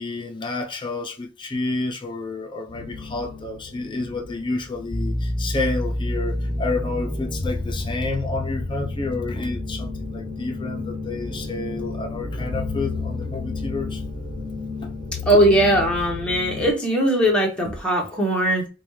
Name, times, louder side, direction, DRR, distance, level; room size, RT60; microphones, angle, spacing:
voice 1, 0.0-14.0 14.8-14.9, left 3 dB, 25° left, 0.6 m, -30 dB
sound 1, 2.7-16.7, left 2 dB, 40° right, 1.3 m, -30 dB
voice 2, 15.3-18.7, right 1 dB, 5° left, 1.0 m, -19 dB
5.0 x 2.3 x 3.1 m
head